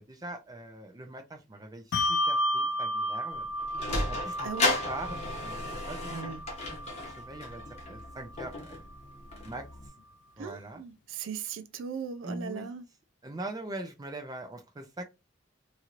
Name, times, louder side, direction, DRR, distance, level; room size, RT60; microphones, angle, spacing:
voice 1, 0.0-3.5 3.9-6.3 6.7-6.8 7.2-8.9 9.4-9.7 10.4-10.8 12.2-12.7 13.2-15.0, right 2 dB, 20° right, 0.4 m, -42 dB
Bell, 1.9-8.8, equal, 70° left, 0.3 m, -33 dB
Sliding door, 3.3-9.9, left 2 dB, 35° left, 0.8 m, -34 dB
voice 2, 4.4-4.8 6.1-6.4 10.4-12.8, right 6 dB, 85° right, 0.4 m, -38 dB
2.9 x 2.8 x 2.4 m
head